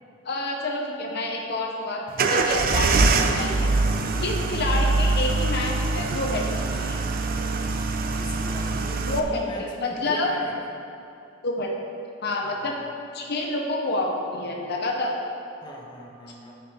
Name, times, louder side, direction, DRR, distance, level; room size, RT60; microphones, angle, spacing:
voice 1, 0.2-3.7 4.2-7.0 9.1-10.3 11.4-11.7 12.2-12.8 13.1-15.2, left 2 dB, 55° left, 0 dB, 0.8 m, -28 dB
sound 1, 2.2-9.2, right 3 dB, 45° right, 0.5 m, -23 dB
voice 2, 8.2-10.5 12.4-12.9 15.6-16.5, equal, 20° left, -2 dB, 1.0 m, -40 dB
13.0 x 5.4 x 3.5 m, 2.7 s
head